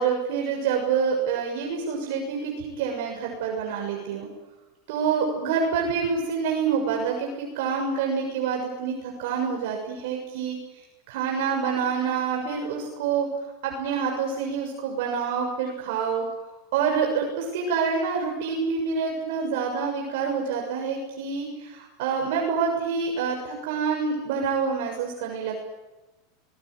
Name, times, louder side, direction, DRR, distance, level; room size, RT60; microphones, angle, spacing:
voice 1, 0.0-4.3 4.9-13.3 13.6-16.2 16.7-25.6, right 6 dB, 65° right, 1 dB, 6.8 m, -27 dB
24.0 x 20.5 x 9.6 m, 1.0 s
supercardioid pair, 155°, 0 cm